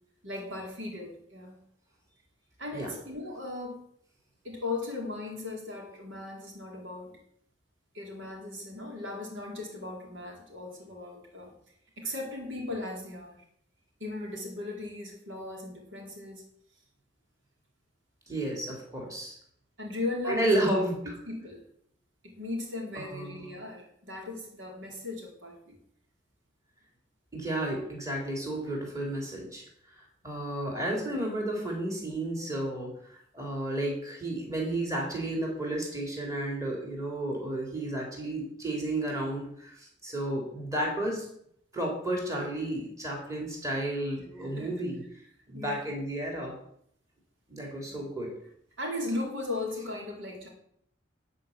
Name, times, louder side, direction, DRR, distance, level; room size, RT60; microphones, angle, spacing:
voice 1, 0.2-1.6 2.6-3.8 4.4-7.2 7.9-11.5 12.0-13.4 14.0-16.4 19.8-20.8 21.3-21.6 22.2-25.8 44.4-44.9 45.5-46.0 47.9-48.1 48.8-50.5, left 2 dB, 90° right, 0 dB, 4.0 m, -37 dB
voice 2, 18.3-19.4 20.3-21.1 23.0-23.6 27.3-29.6 30.0-41.3 41.7-45.0 45.5-46.5 47.5-48.3, right 1 dB, 15° right, -1 dB, 3.6 m, -32 dB
12.5 x 5.6 x 9.0 m, 0.69 s
head